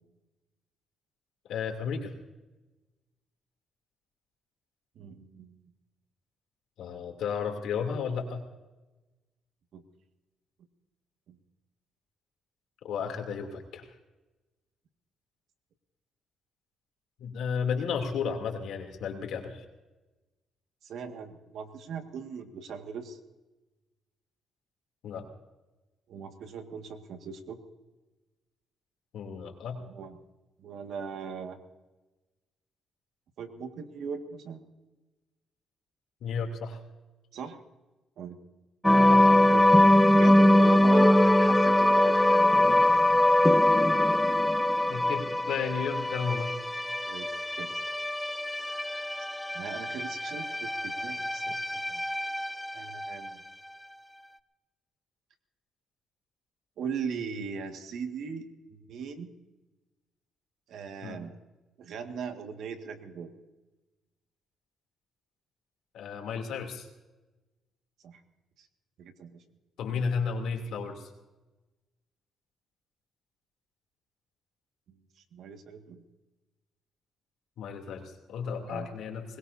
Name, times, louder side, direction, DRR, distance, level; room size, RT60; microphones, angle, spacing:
voice 1, 1.5-2.1 6.8-8.4 12.8-13.9 17.2-19.6 25.0-25.3 29.1-29.8 36.2-36.8 39.1-39.3 44.9-46.5 61.0-61.2 65.9-66.9 69.8-71.1 77.6-79.4, left 6 dB, 80° left, 3 dB, 3.0 m, -33 dB
voice 2, 5.0-5.7 9.7-9.8 11.3-11.4 20.8-23.2 26.1-27.6 29.8-30.2 30.6-31.6 33.4-34.6 37.3-37.6 38.2-38.4 39.5-39.7 40.1-42.5 47.1-47.8 49.5-52.0 52.7-53.4 56.8-59.3 60.7-61.4 61.8-63.3 68.0-68.2 68.6-68.7 69.0-69.4 74.9-75.0 75.3-76.0 78.7-78.9, right 6 dB, 75° right, 6 dB, 1.8 m, -39 dB
sound 1, 38.8-53.3, left 1 dB, 5° left, 0.6 m, -23 dB
22.5 x 20.5 x 2.8 m, 1.1 s
cardioid pair, 90°, 0 cm